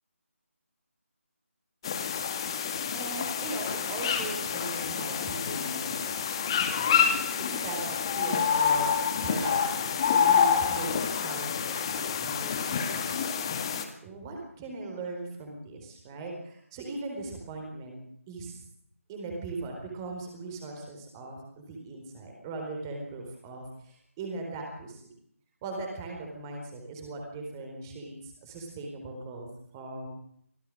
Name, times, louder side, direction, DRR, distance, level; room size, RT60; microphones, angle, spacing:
sound 1, 1.8-13.8, left 7 dB, 20° left, 2.0 m, -28 dB
voice 1, 2.9-9.0 9.2-13.5 14.0-18.0 18.3-18.6 19.1-25.0 25.6-29.5 29.7-30.1, right 3 dB, 15° right, 2 dB, 4.3 m, -39 dB
26.0 x 17.0 x 6.5 m, 0.68 s
figure-of-eight pair, 160°, 8 cm